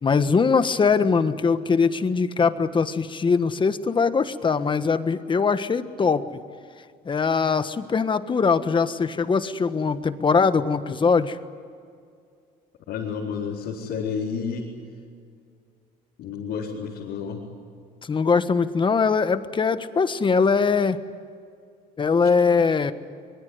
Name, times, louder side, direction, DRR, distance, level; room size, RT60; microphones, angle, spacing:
voice 1, 0.0-6.4 7.0-11.4 18.0-21.0 22.0-22.9, left 5 dB, 30° left, 11 dB, 1.4 m, -21 dB
voice 2, 12.9-14.7 16.2-17.5 22.2-22.3, left 6 dB, 85° left, -4 dB, 4.4 m, -30 dB
25.0 x 22.5 x 9.6 m, 2.3 s
cardioid pair, 110°, 17 cm